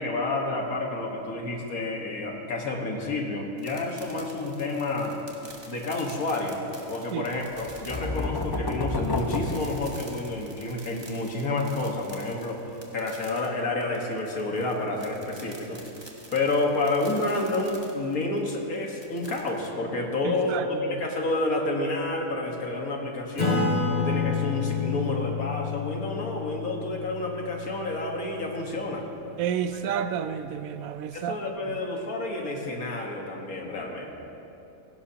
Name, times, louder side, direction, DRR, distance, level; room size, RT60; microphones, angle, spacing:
voice 1, 0.0-5.2 5.7-6.6 6.9-12.6 12.9-15.8 16.3-23.7 24.0-29.1 29.8-30.0 31.1-34.1, left 2 dB, 75° left, 0 dB, 2.0 m, -29 dB
sound 1, 3.6-19.7, right 1 dB, 20° right, 1.4 m, -48 dB
sound 2, 7.5-10.5, left 2 dB, 25° left, 0.5 m, -30 dB
voice 2, 20.2-21.1 29.4-31.4 31.7-31.8, right 8 dB, 75° right, 11 dB, 1.0 m, -31 dB
Acoustic guitar / Strum, 23.4-28.4, left 5 dB, 50° left, 2.8 m, -29 dB
16.5 x 16.5 x 2.9 m, 2.9 s
omnidirectional pair, 1.5 m